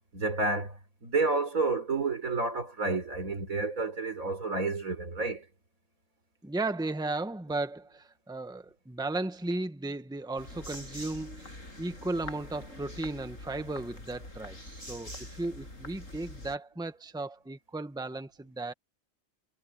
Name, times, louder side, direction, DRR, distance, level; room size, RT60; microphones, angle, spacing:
voice 1, 0.1-0.8 1.0-5.4, right 3 dB, 85° right, 4.6 m, -30 dB
voice 2, 6.4-14.6 14.9-18.7, right 2 dB, 5° right, 1.2 m, -35 dB
sound 1, 10.4-16.6, left 1 dB, 70° left, 7.9 m, -45 dB
omnidirectional pair, 1.4 m